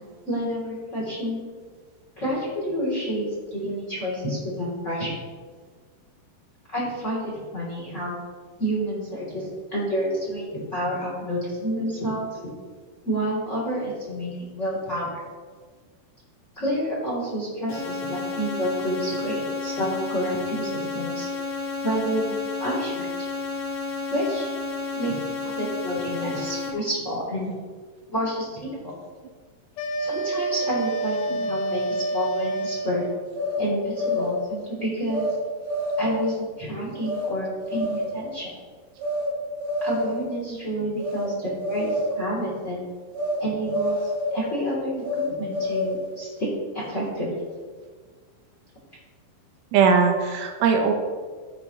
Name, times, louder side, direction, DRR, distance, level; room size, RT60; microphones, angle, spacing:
voice 1, 0.2-1.4 2.2-5.1 6.7-8.2 8.6-12.3 13.0-15.1 16.6-21.3 21.8-23.1 24.1-24.5 24.9-27.5 28.1-28.9 30.0-33.0 33.6-35.3 36.0-38.5 39.8-42.8 43.4-46.5 46.7-47.4, equal, 20° left, -6 dB, 2.8 m, -29 dB
sound 1, 17.7-26.7, left 4 dB, 70° left, 4.1 m, -31 dB
sound 2, 29.8-33.3, right 2 dB, 85° left, 3.1 m, -28 dB
sound 3, 33.3-34.4 35.1-35.4 35.7-36.3 37.0-37.3 37.6-38.2 39.0-39.3 39.6-40.2 41.0-41.3 41.6-42.2 43.1-43.4 43.7-44.5 45.0-46.1, left 1 dB, 40° right, 3.7 m, -27 dB
voice 2, 49.7-50.9, right 5 dB, 80° right, 3 dB, 3.2 m, -20 dB
15.5 x 7.1 x 3.1 m, 1.5 s
omnidirectional pair, 4.9 m